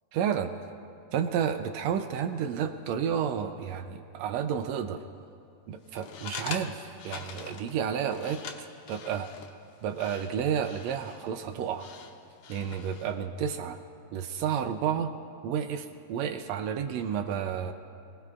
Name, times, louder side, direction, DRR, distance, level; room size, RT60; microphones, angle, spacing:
voice 1, 0.1-0.5 1.1-5.0 5.7-9.3 9.8-11.9 12.5-13.8 14.1-15.1 15.4-17.7, right 8 dB, 85° right, 8 dB, 1.5 m, -31 dB
sound 1, 5.9-13.2, left 6 dB, 75° left, 2.4 m, -44 dB
28.0 x 19.0 x 2.4 m, 2.6 s
omnidirectional pair, 3.8 m